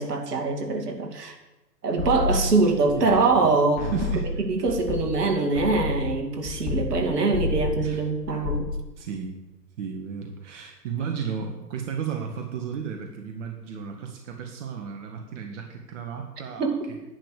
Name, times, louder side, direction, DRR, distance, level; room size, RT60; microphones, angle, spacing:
voice 1, 0.0-1.3 1.8-3.9 4.5-8.7 16.6-16.8, right 3 dB, 70° right, 3 dB, 2.7 m, -23 dB
sound 1, 2.0-3.5 3.8-7.1 7.3-7.9 8.2-8.8, left 3 dB, 40° left, 3.0 m, -29 dB
voice 2, 3.8-4.4 7.8-8.0 9.0-9.4 9.8-16.8, right 7 dB, 45° right, 3 dB, 1.8 m, -34 dB
10.5 x 10.5 x 6.7 m, 1.0 s
hypercardioid pair, 130°, 49 cm